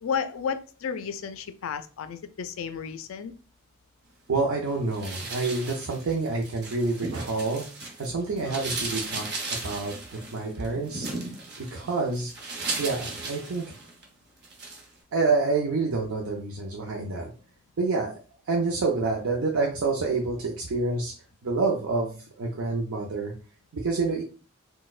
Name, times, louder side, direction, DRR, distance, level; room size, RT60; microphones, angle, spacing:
voice 1, 0.0-3.3 8.4-8.6, left 6 dB, 65° left, 0.3 m, -33 dB
voice 2, 4.3-7.7 8.0-9.3 9.6-9.9 10.3-11.1 11.6-12.3 12.8-13.7 15.1-17.3 17.8-18.1 18.5-21.1 21.4-23.3 23.7-24.2, right 3 dB, 75° right, 0.5 m, -27 dB
sound 1, 4.9-8.1 8.4-14.0 14.4-14.8, right 3 dB, 50° right, 0.8 m, -36 dB
4.1 x 2.1 x 2.4 m
head